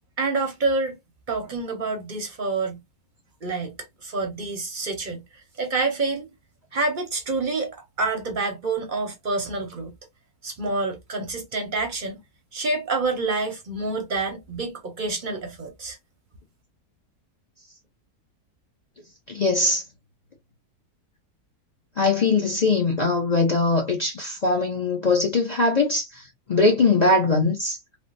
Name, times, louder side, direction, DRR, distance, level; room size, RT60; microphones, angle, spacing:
voice 1, 0.2-1.0 1.3-2.8 3.4-3.7 4.0-5.2 5.6-6.3 6.7-9.9 10.4-12.2 12.5-16.0, right 3 dB, 45° right, 0.6 m, -27 dB
voice 2, 19.3-19.8 22.0-27.8, left 3 dB, 45° left, 0.5 m, -21 dB
3.3 x 2.0 x 2.6 m
omnidirectional pair, 1.6 m